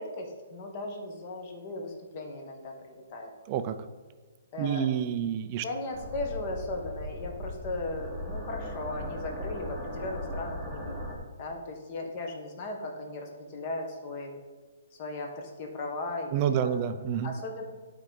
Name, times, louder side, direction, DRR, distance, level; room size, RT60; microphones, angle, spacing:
voice 1, 0.0-3.3 4.5-4.9 5.6-14.3 14.9-16.9 17.2-17.6, left 2 dB, 25° left, 2 dB, 1.1 m, -37 dB
voice 2, 4.6-5.6 16.3-17.3, right 9 dB, 25° right, 10 dB, 0.4 m, -28 dB
sound 1, 5.9-11.2, equal, 5° left, 1.2 m, -38 dB
12.0 x 4.6 x 3.9 m, 1.3 s
hypercardioid pair, 175°, 0 cm